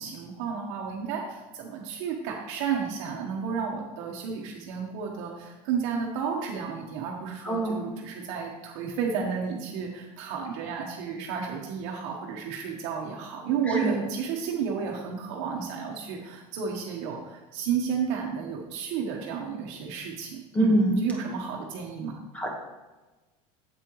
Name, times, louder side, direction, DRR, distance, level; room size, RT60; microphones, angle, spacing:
voice 1, 0.0-22.2, right 6 dB, 65° right, -1 dB, 1.2 m, -32 dB
voice 2, 7.4-7.9 13.8-14.0 20.5-21.0 22.3-22.5, right 1 dB, 10° left, 0 dB, 1.4 m, -24 dB
8.4 x 8.1 x 3.1 m, 1.2 s
cardioid pair, 165°, 15 cm